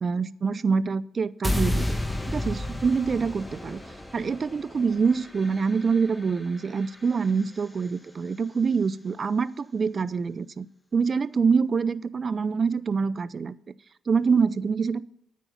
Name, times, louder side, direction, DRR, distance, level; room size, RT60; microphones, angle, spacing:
voice 1, 0.0-2.0 2.3-3.8 4.1-10.7 10.9-13.6 14.1-15.0, right 5 dB, 45° right, 19 dB, 0.5 m, -25 dB
sound 1, 1.4-7.6, left 1 dB, 10° left, 1.7 m, -32 dB
9.1 x 8.3 x 5.7 m, 0.75 s
hypercardioid pair, 50°, 0 cm